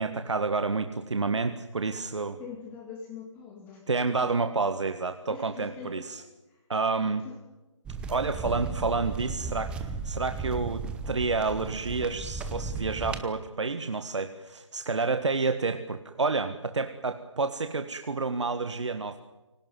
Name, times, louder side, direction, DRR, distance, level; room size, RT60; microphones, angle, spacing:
voice 1, 0.0-2.4 3.9-6.2 6.7-7.2 8.1-19.2, right 4 dB, 65° right, 8 dB, 1.6 m, -29 dB
voice 2, 2.4-3.9 5.3-6.6 7.2-7.4, left 6 dB, 10° left, 0 dB, 2.5 m, -44 dB
sound 1, 7.8-13.2, right 4 dB, 5° right, 0.9 m, -35 dB
25.0 x 18.0 x 9.4 m, 1.1 s
figure-of-eight pair, 150°, 16 cm